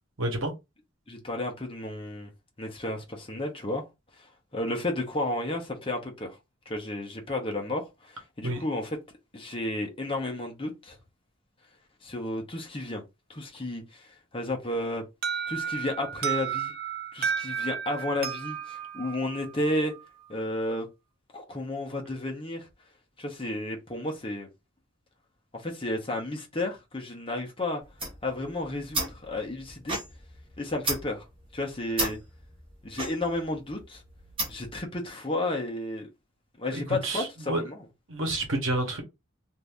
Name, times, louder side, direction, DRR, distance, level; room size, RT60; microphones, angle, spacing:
voice 1, 0.2-0.5 8.4-8.6 36.7-37.6 38.1-39.0, right 1 dB, 70° right, 1.1 m, -29 dB
voice 2, 1.1-2.3 2.6-3.8 4.5-6.4 6.7-9.0 9.3-11.0 12.0-13.0 13.3-15.0 15.5-16.7 17.1-19.9 20.3-20.9 21.3-22.7 23.2-24.5 25.5-27.8 28.2-30.0 30.6-31.2 31.5-32.2 32.8-34.0 34.5-36.1 36.6-37.8, left 1 dB, 25° left, 0.8 m, -32 dB
Alarm, 15.2-20.0, right 8 dB, 50° right, 0.4 m, -33 dB
sound 1, 27.8-34.8, right 2 dB, 25° right, 1.1 m, -35 dB
2.6 x 2.6 x 3.4 m
head